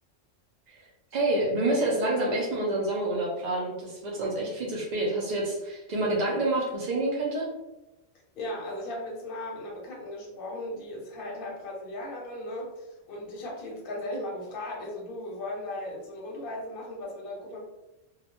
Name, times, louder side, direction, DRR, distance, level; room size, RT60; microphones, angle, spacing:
voice 1, 1.1-7.5, right 2 dB, 75° right, -3 dB, 0.4 m, -28 dB
voice 2, 8.4-17.6, left 1 dB, 50° left, -3 dB, 0.8 m, -37 dB
2.3 x 2.1 x 2.8 m, 0.97 s
omnidirectional pair, 1.3 m